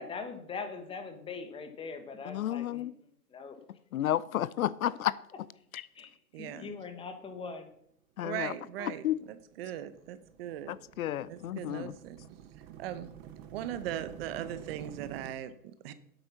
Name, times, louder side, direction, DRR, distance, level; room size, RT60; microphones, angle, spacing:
voice 1, 0.0-3.6 4.8-4.9 5.9-6.1 6.4-7.7, left 4 dB, 10° left, 8 dB, 1.0 m, -42 dB
voice 2, 2.3-2.9 3.9-5.1 5.7-5.8 8.2-8.5 8.8-9.2 10.7-11.9, left 12 dB, 65° left, 20 dB, 0.5 m, -32 dB
voice 3, 6.3-6.7 8.2-10.7 11.3-12.2 12.8-13.1 13.5-15.9, right 11 dB, 40° right, 13 dB, 0.8 m, -39 dB
sound 1, 8.4-15.3, right 10 dB, 20° right, 0.5 m, -49 dB
8.2 x 7.8 x 5.8 m, 0.69 s
hypercardioid pair, 125°, 46 cm